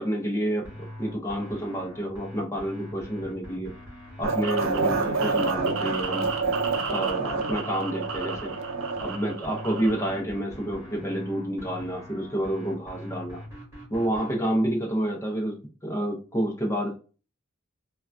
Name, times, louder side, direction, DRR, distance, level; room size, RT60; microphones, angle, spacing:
voice 1, 0.0-3.7 4.2-6.3 6.9-8.5 9.0-13.4 13.9-15.6 15.8-16.9, right 1 dB, 15° left, 0 dB, 0.5 m, -29 dB
sound 1, 0.6-14.4, equal, 15° right, 1.6 m, -42 dB
sound 2, 4.2-10.2, right 4 dB, 85° right, 0.5 m, -28 dB
3.5 x 2.2 x 2.5 m, 0.35 s
head